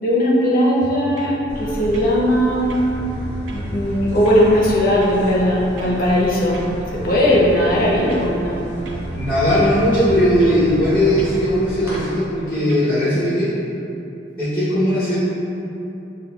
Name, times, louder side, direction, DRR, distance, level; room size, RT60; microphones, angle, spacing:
voice 1, 0.0-2.8 3.5-6.6 6.9-8.6, equal, 50° left, -4 dB, 0.6 m, -18 dB
sound 1, 0.8-1.4 1.9-2.4 2.7-4.5 5.0-5.3 5.8-6.0 6.5-7.6 8.1-8.6 8.9-10.7 11.2-11.4 11.9-12.2 12.7-12.9, equal, 85° right, 0.4 m, -33 dB
sound 2, 1.5-12.0, equal, 15° right, 0.9 m, -33 dB
voice 2, 9.1-13.6 14.4-15.2, equal, 10° left, -12 dB, 0.7 m, -18 dB
5.1 x 2.2 x 2.2 m, 2.9 s
head